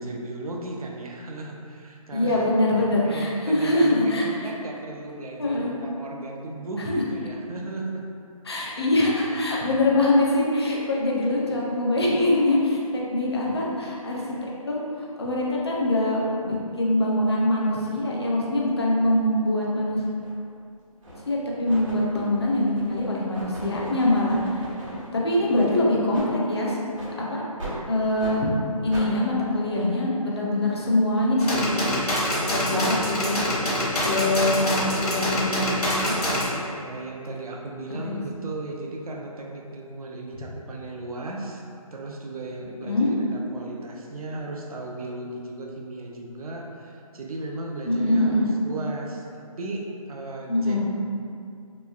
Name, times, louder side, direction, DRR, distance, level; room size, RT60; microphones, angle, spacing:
voice 1, 0.0-2.5 3.0-8.0 25.1-25.8 34.2-34.6 34.9-35.4 36.8-41.6 41.9-50.8, right 2 dB, 75° right, 0 dB, 0.5 m, -36 dB
voice 2, 2.1-4.2 5.4-5.7 6.9-7.0 8.5-14.2 14.6-14.8 15.2-20.0 21.3-24.6 25.1-26.8 27.2-27.4 27.9-28.5 28.8-31.9 32.5-33.4 34.0-36.1 38.0-38.2 42.8-43.1 47.9-48.5 50.5-50.8, left 1 dB, 45° left, -4 dB, 0.5 m, -23 dB
sound 1, 20.2-20.3 21.0-21.3 21.7-25.1 25.5-25.7 26.1-26.3 26.9-27.1 27.6-27.8 28.2-28.4 28.9-29.1, right 1 dB, 55° right, 1.1 m, -38 dB
sound 2, 31.4-36.4, left 1 dB, 80° left, 0.9 m, -25 dB
3.0 x 2.4 x 2.3 m, 2.5 s
hypercardioid pair, 170°, 19 cm